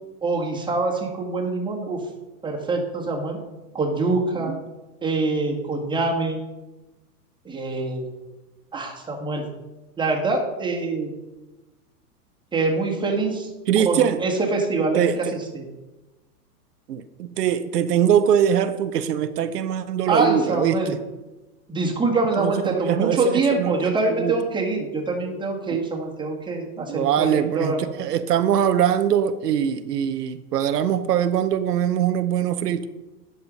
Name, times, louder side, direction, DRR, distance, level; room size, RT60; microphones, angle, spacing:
voice 1, 0.2-2.0 2.4-3.4 3.7-4.5 5.0-6.4 7.4-8.0 8.7-9.4 10.0-11.1 12.5-13.5 13.8-15.1 15.5-15.6 20.0-20.9 21.7-27.8, right 3 dB, 10° right, -1 dB, 1.7 m, -24 dB
voice 2, 13.7-14.2 14.9-15.4 16.9-21.0 22.4-24.4 25.7-25.8 26.8-32.9, right 9 dB, 90° right, 11 dB, 0.7 m, -22 dB
9.5 x 5.7 x 5.2 m, 1.1 s
hypercardioid pair, 125°, 46 cm